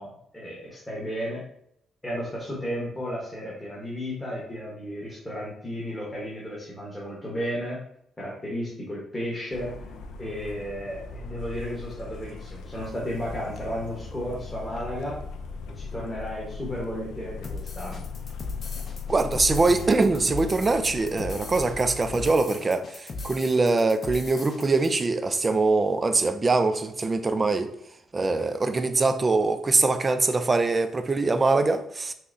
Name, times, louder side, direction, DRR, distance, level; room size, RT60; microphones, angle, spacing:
voice 1, 0.0-1.4 2.0-7.8 8.2-9.7 10.2-15.2 15.7-18.0 23.1-23.2, equal, 15° left, 1.1 m, -33 dB
sound 1, 9.5-22.3, left 4 dB, 85° left, 0.4 m, -38 dB
sound 2, 17.4-24.9, left 3 dB, 40° left, 0.6 m, -39 dB
voice 2, 19.1-27.7 28.1-32.1, right 3 dB, 30° right, 0.3 m, -23 dB
5.5 x 2.1 x 2.6 m
cardioid pair, 90°, 0 cm